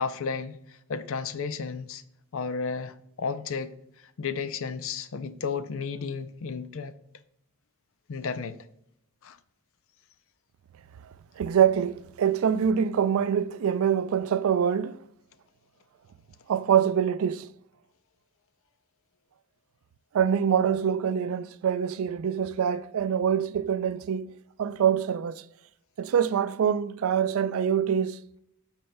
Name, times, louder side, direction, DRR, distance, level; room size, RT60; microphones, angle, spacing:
voice 1, 0.0-2.0 2.3-3.7 4.2-6.9 8.1-8.6 9.2-9.4, left 5 dB, 65° left, 0.5 m, -33 dB
voice 2, 11.0-15.0 16.5-17.5 20.1-25.4 26.0-28.2, right 8 dB, 65° right, 0.3 m, -25 dB
13.0 x 4.4 x 2.2 m
head